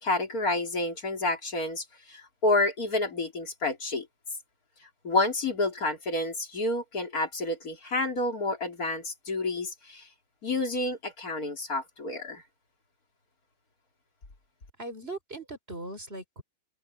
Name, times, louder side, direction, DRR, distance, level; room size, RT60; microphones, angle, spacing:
voice 1, 0.0-4.1 5.0-10.1 10.4-12.4, left 2 dB, 45° left, 3.6 m, -29 dB
voice 2, 14.8-16.4, right 2 dB, 25° right, 4.6 m, -39 dB
omnidirectional pair, 2.3 m